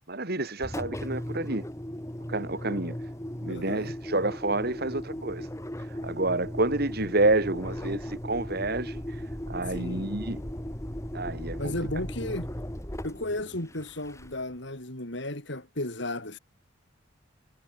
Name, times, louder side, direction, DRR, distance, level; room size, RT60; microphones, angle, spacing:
voice 1, 0.0-1.7 2.3-3.0 3.4-5.5 6.0-9.0 9.5-10.4 11.1-11.7, right 2 dB, 55° right, 3.0 m, -29 dB
Engine, 0.6-14.6, equal, 15° left, 2.3 m, -37 dB
voice 2, 3.5-3.9 9.7-10.2 11.6-12.5 13.0-16.4, left 1 dB, 65° left, 4.5 m, -34 dB
head